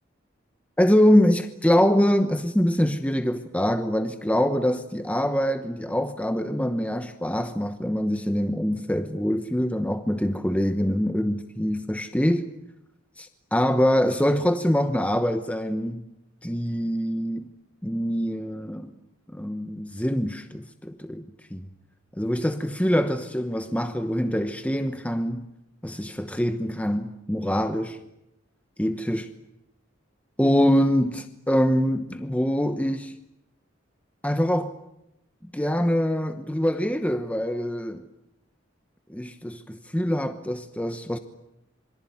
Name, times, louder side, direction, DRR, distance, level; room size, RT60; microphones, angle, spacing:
voice 1, 0.8-12.5 13.2-16.0 16.4-17.5 17.8-18.9 19.3-21.2 21.5-21.7 22.2-25.5 25.8-28.0 28.8-29.2 30.4-33.1 34.2-34.8 35.5-38.0 39.1-41.2, equal, 5° left, 1.0 m, -24 dB
27.0 x 23.5 x 9.4 m
head